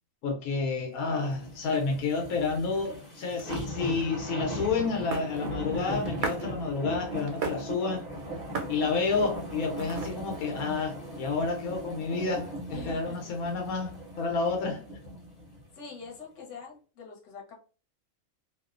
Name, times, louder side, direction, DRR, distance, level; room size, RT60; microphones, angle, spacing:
voice 1, 0.2-8.1 8.7-14.8, left 4 dB, 85° left, 1.1 m, -30 dB
sound 1, 1.2-15.6 16.1-16.2, equal, 35° left, 0.8 m, -38 dB
sound 2, 2.3-10.4, right 5 dB, 85° right, 1.1 m, -41 dB
voice 2, 12.7-13.3 15.7-17.5, left 5 dB, 60° left, 1.1 m, -44 dB
2.7 x 2.0 x 2.4 m
omnidirectional pair, 1.5 m